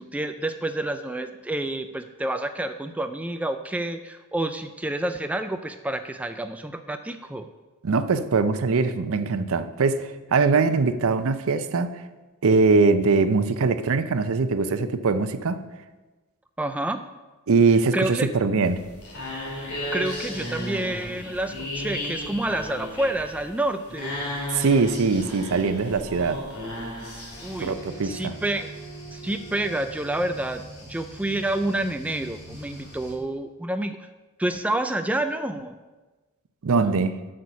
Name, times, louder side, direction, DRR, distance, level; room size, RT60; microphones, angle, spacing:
voice 1, 0.0-7.5 16.6-17.0 17.9-18.3 19.6-24.2 27.4-27.8 28.0-28.7 29.1-34.0 34.4-35.8, right 1 dB, 5° right, 8 dB, 0.3 m, -29 dB
voice 2, 7.8-11.9 12.4-15.6 17.5-18.8 24.5-26.4 27.6-28.3 36.6-37.3, right 4 dB, 65° right, 11 dB, 0.6 m, -22 dB
sound 1, 18.6-27.7, left 1 dB, 80° left, 3.3 m, -34 dB
sound 2, 27.3-33.1, right 2 dB, 50° left, 2.7 m, -42 dB
8.1 x 6.5 x 5.6 m, 1.2 s
head